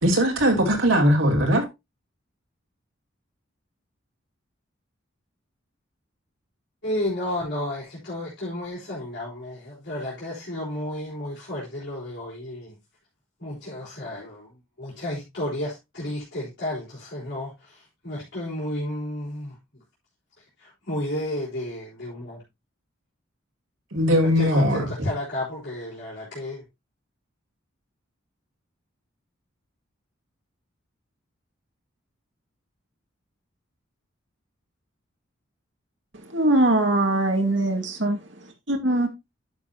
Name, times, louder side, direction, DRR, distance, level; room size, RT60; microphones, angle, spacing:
voice 1, 0.0-1.6 23.9-24.8, equal, 80° right, 3.1 m, -19 dB
voice 2, 6.8-12.8 13.4-19.8 20.4-22.4 24.3-26.6, left 1 dB, 60° left, 4.7 m, -32 dB
voice 3, 36.3-39.1, right 1 dB, 65° right, 2.1 m, -22 dB
11.0 x 7.4 x 2.9 m
head